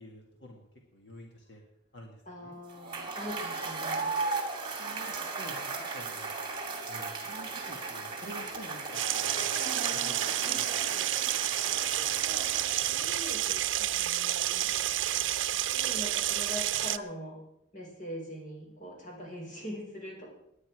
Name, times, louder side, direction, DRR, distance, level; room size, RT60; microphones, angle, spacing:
voice 1, 0.0-1.6 1.9-2.6 4.8-6.4 6.9-10.1 10.5-10.7 11.1-11.5, left 1 dB, 65° left, 1 dB, 2.0 m, -49 dB
voice 2, 2.3-4.2 12.9-14.7 15.7-17.4 17.7-20.3, equal, 45° left, -1 dB, 5.3 m, -42 dB
Cheering / Applause / Crowd, 2.7-13.2, right 3 dB, 25° right, 2.4 m, -36 dB
sound 1, 8.9-17.0, right 13 dB, 85° right, 0.6 m, -30 dB
19.5 x 9.9 x 4.9 m, 0.78 s
head